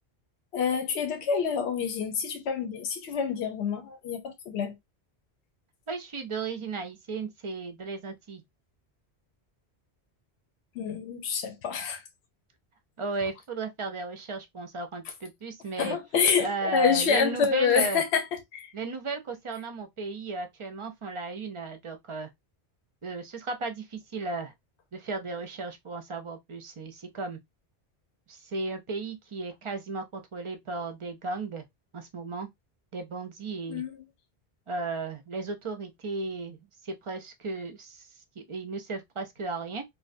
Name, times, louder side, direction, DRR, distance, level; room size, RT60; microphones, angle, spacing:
voice 1, 0.5-4.8 10.8-12.0 15.8-18.2 18.5-18.7 33.6-34.0, left 6 dB, 80° left, 0.9 m, -27 dB
voice 2, 5.9-8.4 13.0-16.0 16.4-18.0 18.7-22.3 23.0-24.5 24.9-27.4 28.3-31.6 31.9-32.5 32.9-33.8 34.7-38.1 38.4-39.8, right 3 dB, 45° right, 0.4 m, -35 dB
2.6 x 2.2 x 2.4 m
omnidirectional pair, 1.1 m